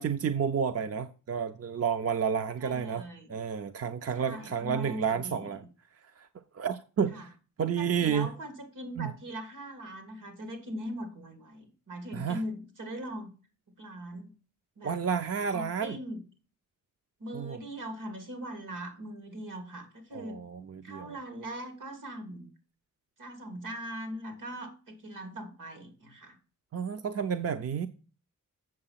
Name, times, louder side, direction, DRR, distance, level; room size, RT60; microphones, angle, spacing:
voice 1, 0.0-5.6 6.0-6.3 6.5-7.3 7.6-8.3 9.0-9.1 12.1-12.4 14.8-16.0 17.3-17.6 20.1-21.2 26.7-27.9, right 7 dB, 50° right, 0.6 m, -31 dB
voice 2, 2.6-3.3 4.1-5.7 7.1-7.3 7.8-13.3 13.8-14.3 14.8-15.0 15.4-16.2 17.2-20.4 20.8-22.5 23.2-26.4, right 1 dB, 80° right, 3.0 m, -40 dB
7.7 x 6.9 x 5.7 m
wide cardioid pair, 120°, 31 cm